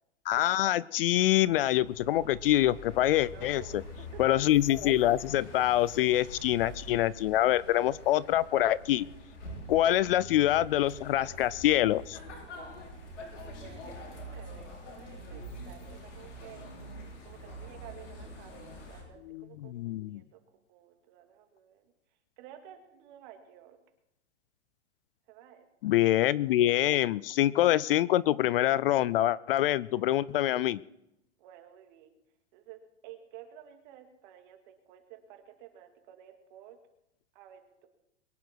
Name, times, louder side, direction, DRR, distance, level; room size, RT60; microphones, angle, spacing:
voice 1, 0.3-3.8 4.2-9.1 9.7-12.2 19.3-20.2 25.8-30.8, left 14 dB, 55° left, 21 dB, 0.5 m, -25 dB
sound 1, 1.1-19.0, equal, 90° left, 6.4 m, -45 dB
voice 2, 3.3-4.4 13.4-16.7 17.2-21.8 22.4-23.8 25.3-25.9 31.4-32.1 32.5-36.8 37.3-37.9, right 10 dB, 45° right, 5 dB, 2.5 m, -52 dB
23.0 x 10.5 x 4.6 m, 0.84 s
hypercardioid pair, 150°, 35 cm